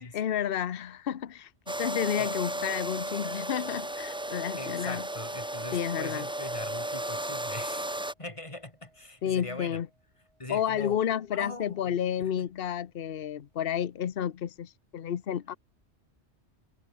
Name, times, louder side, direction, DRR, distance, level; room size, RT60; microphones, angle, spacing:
voice 1, 0.0-5.0 5.7-6.3 9.2-9.9 10.5-15.6, left 9 dB, 55° left, 1.0 m, -31 dB
sound 1, 1.7-8.1, right 1 dB, 5° right, 0.4 m, -34 dB
voice 2, 4.6-7.9 8.2-9.8 10.4-11.0 11.3-12.0 12.4-12.5, left 1 dB, 25° left, 3.3 m, -41 dB
sound 2, 8.2-10.4 10.7-10.9 11.3-11.4, right 2 dB, 65° right, 4.5 m, -55 dB
omnidirectional pair, 1.2 m